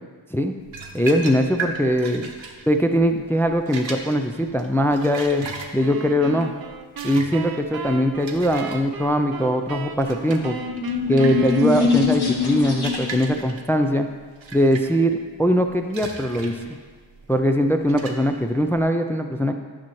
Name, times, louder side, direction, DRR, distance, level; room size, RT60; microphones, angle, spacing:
sound 1, 0.6-18.8, right 3 dB, 70° right, 1.0 m, -38 dB
voice 1, 0.9-2.3 2.7-5.4 5.7-6.5 7.0-10.6 11.1-14.1 14.5-16.6 17.3-19.5, equal, 5° left, 6 dB, 0.3 m, -21 dB
sound 2, 5.8-12.4, right 5 dB, 50° right, 0.7 m, -36 dB
sound 3, 10.4-13.4, left 5 dB, 55° left, 1.4 m, -23 dB
10.0 x 5.7 x 3.1 m, 1.5 s
cardioid pair, 65°, 48 cm